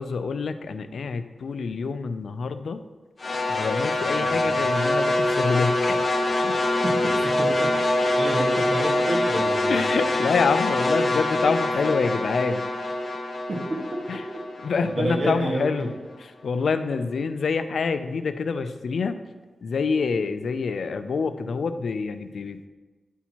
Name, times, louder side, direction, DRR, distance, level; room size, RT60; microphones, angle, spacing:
voice 1, 0.0-2.8 3.5-6.0 6.4-6.6 9.7-12.6 14.1-14.2 14.6-15.9 16.4-19.2 19.6-22.6, left 5 dB, 75° left, 10 dB, 0.3 m, -26 dB
sound 1, 3.2-15.5, left 1 dB, 45° left, 0.7 m, -24 dB
voice 2, 4.2-4.6 6.7-7.5 8.2-9.8 13.5-13.6 14.8-15.9, right 1 dB, 50° right, -2 dB, 1.5 m, -29 dB
10.0 x 4.4 x 2.9 m, 1.3 s
wide cardioid pair, 115°, 0 cm